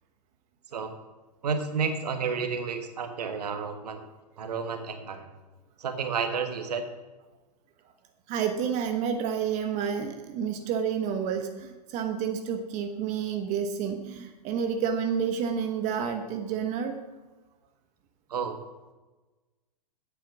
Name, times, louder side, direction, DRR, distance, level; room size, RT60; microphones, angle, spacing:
voice 1, 1.4-4.0 4.4-5.3 5.8-6.8 18.3-18.6, right 5 dB, 70° right, 6 dB, 1.5 m, -31 dB
voice 2, 8.3-17.0, right 7 dB, 35° right, 5 dB, 1.1 m, -29 dB
9.2 x 8.0 x 6.1 m, 1.2 s
hypercardioid pair, 110°, 21 cm